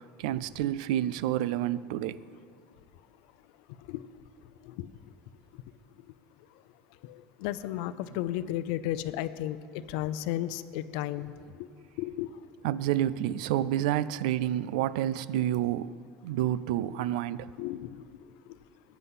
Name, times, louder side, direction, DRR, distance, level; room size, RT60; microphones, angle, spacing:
voice 1, 0.0-2.2 12.6-15.9 16.2-17.5, right 12 dB, 90° right, 0.4 m, -29 dB
voice 2, 7.4-11.3 12.0-12.3 17.0-17.1 17.6-17.9, left 13 dB, 75° left, 0.6 m, -33 dB
15.5 x 9.5 x 5.6 m
supercardioid pair, 130°, 4 cm